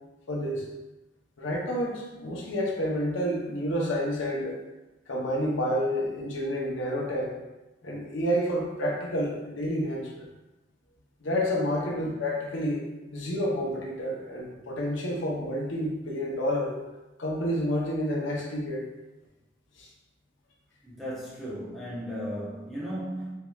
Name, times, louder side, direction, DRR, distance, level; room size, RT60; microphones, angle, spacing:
voice 1, 0.3-0.7 1.4-4.6 5.1-7.4 7.8-10.3 11.2-12.8 13.1-16.8 17.2-18.9 19.8-19.9, equal, 90° left, -2 dB, 0.8 m, -29 dB
voice 2, 20.8-23.4, equal, ahead, -9 dB, 0.9 m, -36 dB
4.5 x 3.0 x 2.3 m, 1.1 s
head